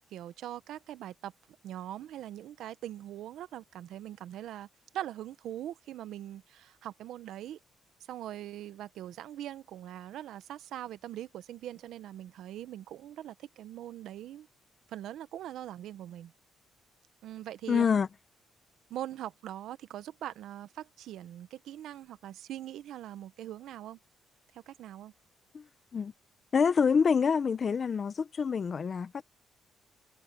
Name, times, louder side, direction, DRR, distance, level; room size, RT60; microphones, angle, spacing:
voice 1, 0.1-1.3 1.6-4.7 4.9-7.6 8.1-14.5 14.9-16.3 17.2-17.9 18.9-24.0 24.5-25.1, right 12 dB, 80° right, 0.9 m, -42 dB
voice 2, 17.7-18.1 25.5-25.6 25.9-26.1 26.5-29.2, left 6 dB, 45° left, 0.9 m, -26 dB
cardioid pair, 90°, 0 cm